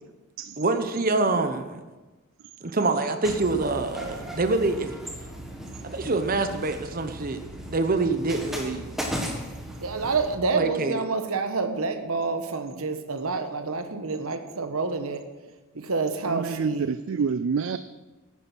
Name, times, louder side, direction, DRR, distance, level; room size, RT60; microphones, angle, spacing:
voice 1, 0.6-1.8 2.6-4.9 5.9-7.4 7.7-8.9 10.5-11.0, right 3 dB, 40° right, 8 dB, 0.9 m, -25 dB
sound 1, 3.2-10.4, equal, ahead, 1.5 m, -36 dB
voice 2, 9.8-15.2 15.7-16.9, right 4 dB, 85° right, 8 dB, 1.2 m, -28 dB
voice 3, 16.3-17.8, right 5 dB, 60° right, 13 dB, 0.4 m, -28 dB
11.0 x 9.8 x 6.1 m, 1.2 s
head